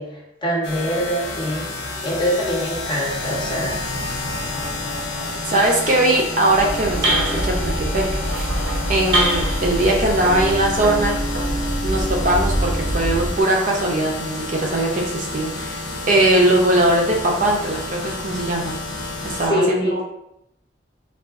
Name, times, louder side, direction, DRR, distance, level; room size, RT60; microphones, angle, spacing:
voice 1, 0.0-1.6 2.0-3.8 19.4-20.0, equal, 25° left, -3 dB, 0.7 m, -24 dB
sound 1, 0.6-19.5, left 2 dB, 70° left, 0.6 m, -30 dB
voice 2, 5.5-8.5 8.9-11.2 11.8-18.8 19.2-20.0, right 1 dB, 45° right, -1 dB, 0.5 m, -20 dB
sound 2, 6.5-13.4, right 1 dB, 85° right, 0.8 m, -24 dB
3.5 x 2.4 x 2.4 m, 0.80 s
head